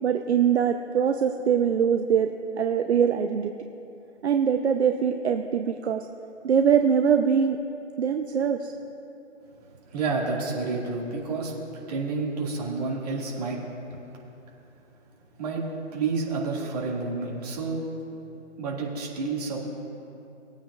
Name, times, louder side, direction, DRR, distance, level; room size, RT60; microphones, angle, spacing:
voice 1, 0.0-3.5 4.2-6.1 6.4-7.6 8.0-8.7, right 7 dB, 60° right, 5 dB, 0.6 m, -23 dB
voice 2, 9.9-13.6 15.4-17.8 18.6-19.6, right 4 dB, 30° right, -3 dB, 1.9 m, -30 dB
21.0 x 8.8 x 2.3 m, 2.8 s
hypercardioid pair, 160°, 38 cm